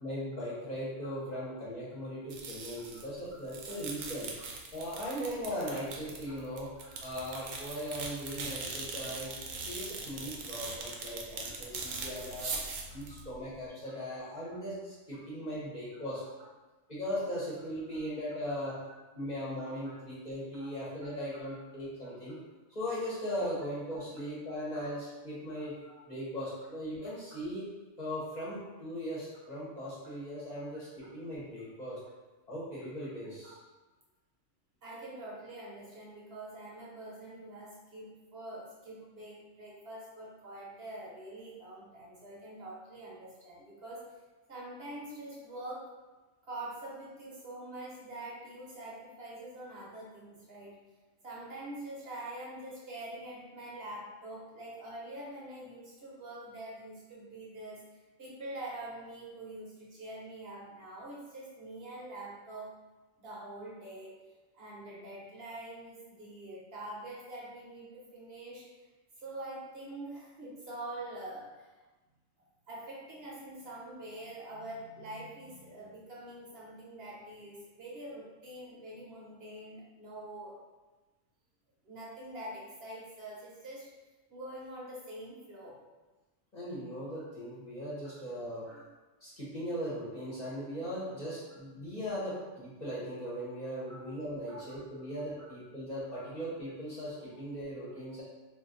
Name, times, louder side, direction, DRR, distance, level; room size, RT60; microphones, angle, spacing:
voice 1, 0.0-4.3 4.7-6.7 7.0-9.3 9.7-12.6 12.9-16.2 16.9-18.8 19.1-22.4 22.7-25.7 26.1-27.6 28.0-32.0 32.5-33.6 86.5-88.7 89.2-98.2, equal, 40° left, -9 dB, 0.9 m, -38 dB
voice 2, 1.0-1.4 2.9-3.0 4.0-4.1 5.5-5.8 6.8-6.9 10.0-10.1 11.4-11.6 12.0-12.1 18.6-18.7 19.8-19.9 20.6-20.7 21.5-21.6 23.9-24.0 24.5-24.8 25.8-26.0 27.0-27.1 30.5-30.7 33.4-33.5 34.8-44.1 44.5-45.9 46.4-50.7 51.2-62.7 63.2-64.1 64.5-68.6 69.2-71.7 72.7-80.5 81.8-83.9 84.3-85.8 88.0-88.1 88.7-88.8 93.9-94.0 94.5-94.6 96.2-96.3, right 1 dB, 55° right, -6 dB, 0.9 m, -45 dB
sound 1, 2.3-13.7, right 4 dB, 90° right, 1.0 m, -41 dB
2.5 x 2.5 x 3.7 m, 1.2 s
omnidirectional pair, 1.3 m